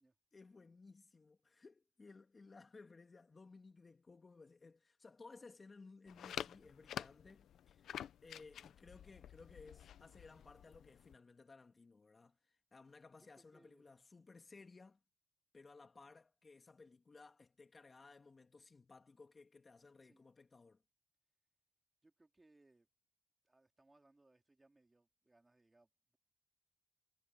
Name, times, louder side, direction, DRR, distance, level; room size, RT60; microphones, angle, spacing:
voice 1, 0.3-15.0 15.5-20.8, left 4 dB, 30° left, 2.0 m, -59 dB
sound 1, 6.1-11.2, left 10 dB, 70° left, 0.8 m, -49 dB
voice 2, 13.2-13.9 20.0-20.2 22.0-22.9 23.4-26.2, right 2 dB, 15° right, 4.1 m, -70 dB
cardioid pair, 90°, 0 cm